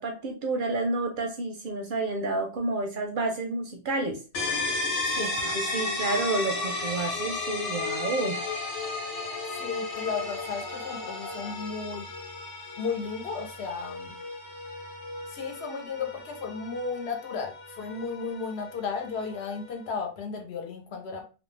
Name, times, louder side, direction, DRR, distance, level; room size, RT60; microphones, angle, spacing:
voice 1, 0.0-4.2 5.2-8.4, right 2 dB, 60° right, 3 dB, 0.6 m, -30 dB
sound 1, 4.3-19.9, left 3 dB, 90° left, 1.1 m, -34 dB
voice 2, 5.0-5.4 9.6-12.1 12.8-14.1 15.3-21.3, left 5 dB, 70° left, 3 dB, 0.9 m, -34 dB
sound 2, 5.2-11.5, left 2 dB, 30° left, 0.7 m, -44 dB
2.4 x 2.1 x 3.1 m, 0.33 s
omnidirectional pair, 1.2 m